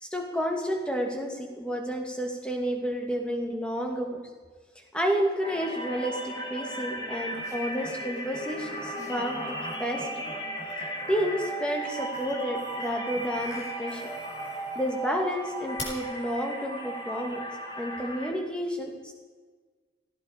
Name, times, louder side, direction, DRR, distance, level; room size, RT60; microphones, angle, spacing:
voice 1, 0.0-4.2 4.9-10.3 11.1-14.1 14.8-17.4 17.8-19.1, equal, 5° left, 2 dB, 2.2 m, -30 dB
sound 1, 5.4-18.3, right 1 dB, 25° left, 2.8 m, -36 dB
sound 2, 7.3-15.0 15.8-15.9, left 1 dB, 40° left, 4.6 m, -43 dB
17.5 x 16.0 x 5.1 m, 1.4 s
head